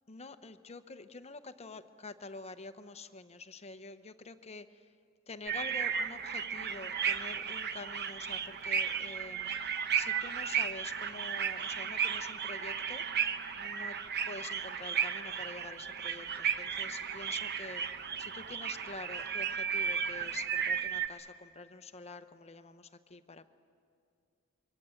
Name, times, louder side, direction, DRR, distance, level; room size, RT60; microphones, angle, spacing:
voice 1, 0.1-4.6 5.3-13.0 13.6-13.9 14.3-17.8 18.2-23.5, left 3 dB, 30° left, 10 dB, 0.8 m, -47 dB
sound 1, 5.5-21.1, right 7 dB, 50° right, 1.0 m, -34 dB
26.0 x 23.5 x 7.8 m, 2.4 s
head